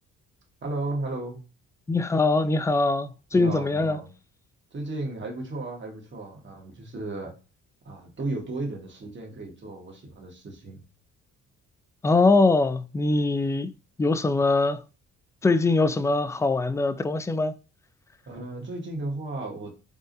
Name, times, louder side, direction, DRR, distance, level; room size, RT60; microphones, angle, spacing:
voice 1, 0.6-1.4 3.3-4.1 4.7-7.3 7.8-10.8 18.3-19.7, right 2 dB, 40° right, 1.5 m, -34 dB
voice 2, 1.9-4.0 12.0-13.7 14.0-14.8 15.4-17.5, left 3 dB, 10° left, 0.3 m, -22 dB
4.0 x 3.5 x 2.6 m
cardioid pair, 90°, 30 cm